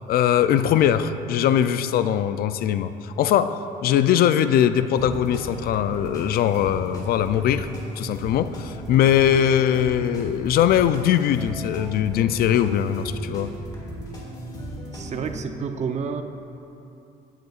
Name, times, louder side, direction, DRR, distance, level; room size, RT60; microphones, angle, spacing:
voice 1, 0.1-3.5 3.8-7.7 8.0-13.5, left 10 dB, 65° left, 11 dB, 0.4 m, -21 dB
sound 1, 5.0-15.4, right 1 dB, 20° left, 1.9 m, -37 dB
voice 2, 14.9-16.2, right 6 dB, 45° right, 6 dB, 0.6 m, -29 dB
14.5 x 9.1 x 2.4 m, 2.9 s
cardioid pair, 110°, 17 cm